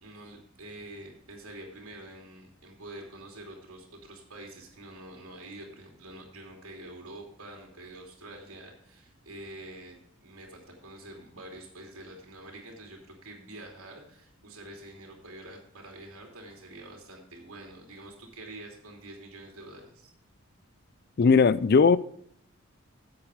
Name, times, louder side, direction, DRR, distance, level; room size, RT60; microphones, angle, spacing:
voice 1, 0.0-20.1, right 1 dB, 80° right, 2.8 m, -46 dB
voice 2, 21.2-22.0, left 5 dB, 45° left, 0.4 m, -18 dB
8.7 x 8.1 x 5.0 m
head